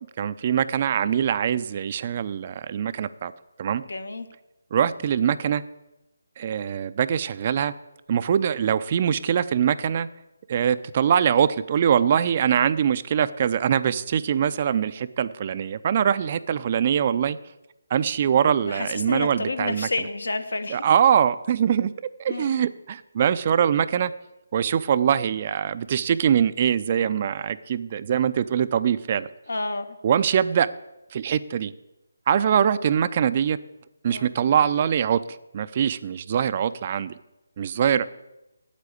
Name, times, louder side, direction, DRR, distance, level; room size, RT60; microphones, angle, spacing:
voice 1, 0.2-3.3 3.6-3.8 4.7-5.6 6.4-7.7 8.1-10.1 10.5-17.4 17.9-19.9 20.7-21.9 22.2-24.1 24.5-29.3 30.0-30.7 31.1-31.7 32.3-33.6 34.0-35.2 35.5-37.1 37.6-38.0, right 8 dB, 35° right, 14 dB, 0.5 m, -23 dB
voice 2, 3.9-4.3 18.7-20.8 22.3-22.6 29.5-30.0 34.1-34.3, left 3 dB, 75° left, 9 dB, 1.4 m, -30 dB
8.3 x 8.2 x 8.4 m, 0.94 s
figure-of-eight pair, 160°, 0 cm